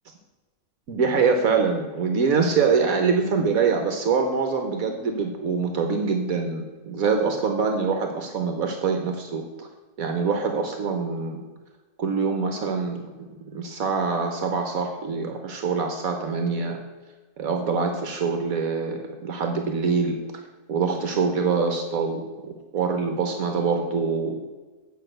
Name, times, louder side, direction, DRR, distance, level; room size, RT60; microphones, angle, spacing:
voice 1, 0.9-9.7 10.0-11.4 12.0-16.8 17.4-20.2 20.7-24.4, right 5 dB, 70° right, 5 dB, 1.4 m, -24 dB
8.2 x 5.6 x 7.9 m, 1.3 s
omnidirectional pair, 1.6 m